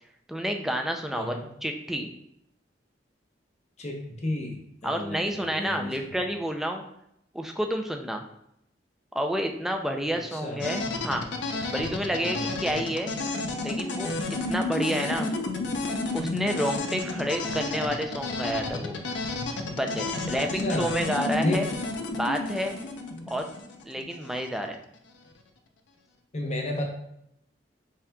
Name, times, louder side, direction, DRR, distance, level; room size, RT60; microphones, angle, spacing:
voice 1, 0.3-1.4 1.6-2.1 4.8-6.8 7.3-8.2 9.1-11.2 11.7-13.1 13.6-15.3 16.1-19.0 19.7-21.7 22.1-22.8 23.3-23.5 23.8-24.8, equal, ahead, 3 dB, 0.3 m, -29 dB
voice 2, 1.1-1.5 3.8-4.6 4.8-6.2 10.1-10.6 12.2-12.5 20.3-20.9 21.4-21.6 26.3-26.8, left 1 dB, 40° left, 1 dB, 0.8 m, -32 dB
sound 1, 10.6-24.5, left 2 dB, 80° left, 0.6 m, -31 dB
5.6 x 3.6 x 2.2 m, 0.76 s
head